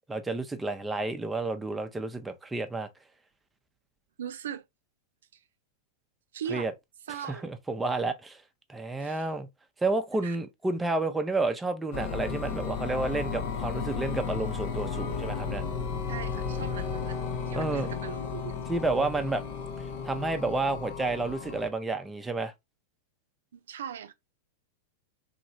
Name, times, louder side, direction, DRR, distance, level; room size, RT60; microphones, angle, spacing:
voice 1, 0.1-2.9 6.5-6.7 7.3-8.4 8.7-9.5 9.8-15.6 17.6-17.9 18.7-19.4 20.0-22.5, right 2 dB, 10° right, 0.5 m, -30 dB
voice 2, 4.2-4.6 5.3-5.4 6.3-6.7 7.1-7.5 9.0-9.3 10.2-10.4 16.1-18.6 23.5-24.1, right 8 dB, 75° right, 0.3 m, -39 dB
sound 1, 11.9-21.7, left 6 dB, 55° left, 0.6 m, -34 dB
3.0 x 2.8 x 2.6 m
hypercardioid pair, 100°, 0 cm